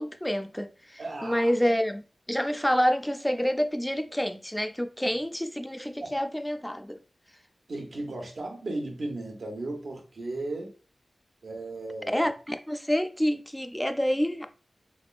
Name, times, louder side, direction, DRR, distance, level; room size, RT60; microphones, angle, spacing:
voice 1, 0.0-2.0 2.3-7.0 12.1-14.5, equal, 5° left, 0.4 m, -28 dB
voice 2, 1.0-1.5 6.0-6.1 7.7-10.7 11.4-12.1, right 2 dB, 75° right, 1.1 m, -35 dB
3.4 x 3.1 x 2.5 m
wide cardioid pair, 60°, 0 cm